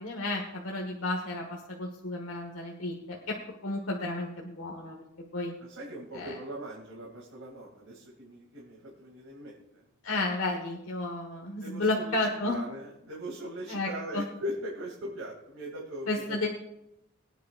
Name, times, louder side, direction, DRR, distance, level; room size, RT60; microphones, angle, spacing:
voice 1, 0.0-3.4 3.6-5.0 5.3-5.5 6.1-6.4 10.0-12.6 13.7-14.2 16.1-16.5, left 2 dB, 80° left, 0 dB, 1.4 m, -32 dB
voice 2, 5.6-9.8 11.6-12.2 12.4-16.5, equal, 85° right, -3 dB, 2.6 m, -40 dB
22.5 x 9.4 x 2.5 m, 0.86 s
head